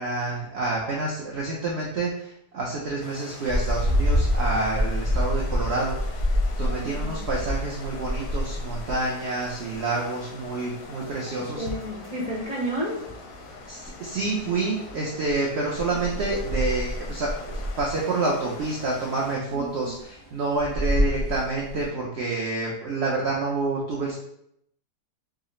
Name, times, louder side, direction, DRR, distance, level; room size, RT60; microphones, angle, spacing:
voice 1, 0.0-6.3 6.6-11.7 13.7-24.1, right 3 dB, 65° right, -3 dB, 0.6 m, -28 dB
sound 1, 3.0-19.4, left 3 dB, 90° left, 1.2 m, -43 dB
sound 2, 3.5-21.9, equal, 35° right, 1.1 m, -29 dB
voice 2, 6.6-7.2 11.3-13.0 16.1-16.3 19.5-19.9, right 1 dB, 70° left, -6 dB, 0.3 m, -32 dB
4.7 x 2.0 x 3.1 m, 0.74 s
omnidirectional pair, 1.7 m